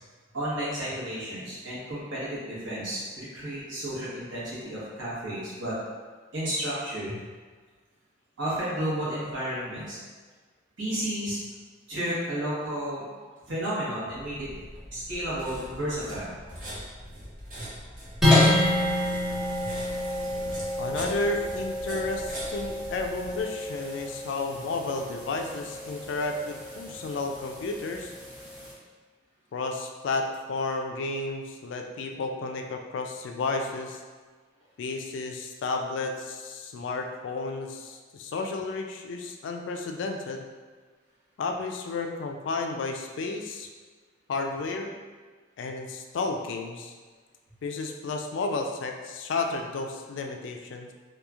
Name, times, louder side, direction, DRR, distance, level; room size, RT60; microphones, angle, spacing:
voice 1, 0.3-5.8 6.3-7.2 8.4-10.0 10.8-11.4 11.9-13.0 13.5-14.5 14.9-16.3 17.5-17.6 19.6-19.7, right 1 dB, 85° right, -8 dB, 1.0 m, -32 dB
sound 1, 14.1-23.4, equal, 45° right, 0.7 m, -42 dB
sound 2, 18.2-28.7, left 1 dB, ahead, 0.6 m, -28 dB
voice 2, 20.8-28.1 29.5-34.0 34.8-40.4 41.4-43.7 44.3-44.9 45.6-46.9 47.6-50.9, left 3 dB, 75° left, 3 dB, 0.3 m, -32 dB
2.9 x 2.4 x 2.3 m, 1.5 s
head